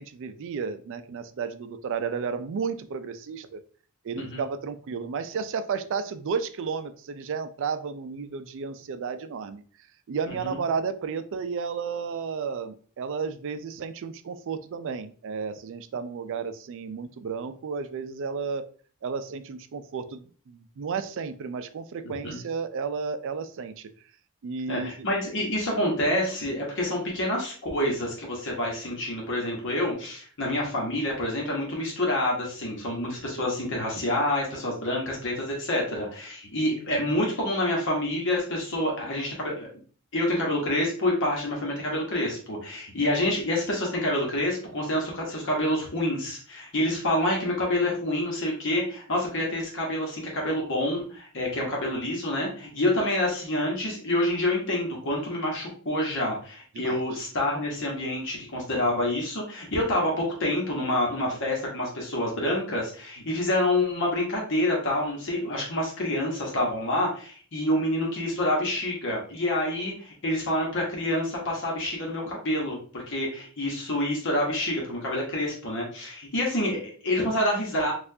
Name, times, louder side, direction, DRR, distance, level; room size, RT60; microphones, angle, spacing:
voice 1, 0.0-3.6 4.0-9.6 10.1-18.7 19.0-23.9 24.4-24.9 47.1-47.2 56.7-57.0, right 5 dB, 60° right, 11 dB, 0.4 m, -32 dB
voice 2, 22.0-22.4 24.7-39.7 40.1-77.9, left 1 dB, 60° left, -2 dB, 1.1 m, -27 dB
4.3 x 2.4 x 2.7 m, 0.43 s
head